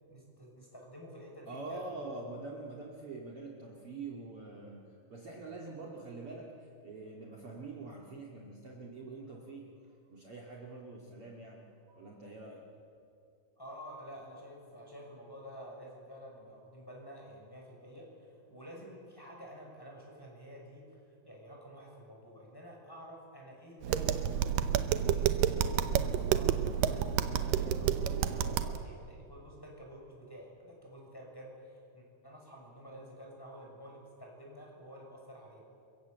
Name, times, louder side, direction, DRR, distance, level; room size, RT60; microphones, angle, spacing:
voice 1, 0.1-2.1 13.6-20.9 21.2-24.5 25.0-35.6, equal, 5° left, -2 dB, 6.1 m, -50 dB
voice 2, 1.5-9.7 10.1-12.8, right 3 dB, 45° right, -1 dB, 2.8 m, -45 dB
Tap, 23.8-28.8, right 9 dB, 90° right, 2.6 m, -30 dB
29.0 x 23.5 x 8.1 m, 2.6 s
omnidirectional pair, 3.8 m